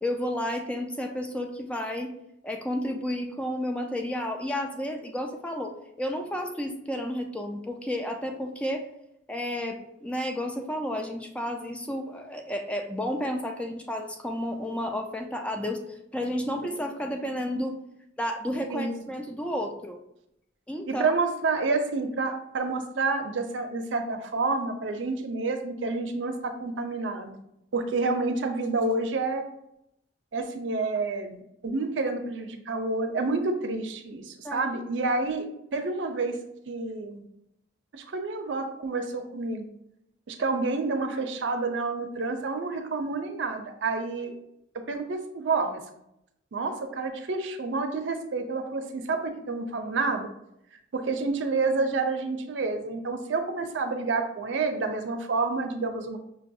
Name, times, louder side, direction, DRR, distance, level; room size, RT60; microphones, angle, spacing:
voice 1, 0.0-2.1 2.4-8.9 9.3-15.8 16.1-17.7 18.2-20.0 20.7-21.1 34.4-34.7, left 1 dB, 5° left, 4 dB, 0.3 m, -31 dB
voice 2, 20.9-27.3 27.7-29.4 30.3-36.4 36.7-37.2 37.9-39.7 40.3-44.3 44.9-45.8 46.5-50.3 50.9-56.2, right 3 dB, 75° right, 6 dB, 0.5 m, -29 dB
5.6 x 2.3 x 2.6 m, 0.81 s
head